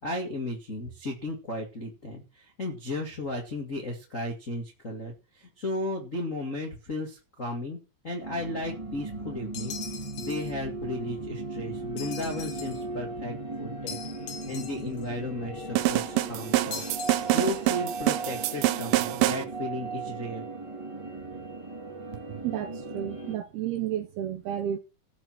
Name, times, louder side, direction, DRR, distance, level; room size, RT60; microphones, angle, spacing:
voice 1, 0.0-7.8 8.0-9.8 10.2-14.0 14.5-16.8 17.3-20.4, left 1 dB, 40° left, 1.1 m, -35 dB
sound 1, 8.2-23.3, right 3 dB, 15° right, 1.0 m, -37 dB
sound 2, 9.5-10.5 12.0-12.8 13.9-15.0 16.7-17.7, left 7 dB, 65° left, 3.7 m, -41 dB
sound 3, 15.8-19.4, right 17 dB, 90° right, 3.3 m, -26 dB
voice 2, 22.3-24.8, right 11 dB, 75° right, 2.5 m, -32 dB
15.0 x 7.2 x 6.0 m
omnidirectional pair, 5.4 m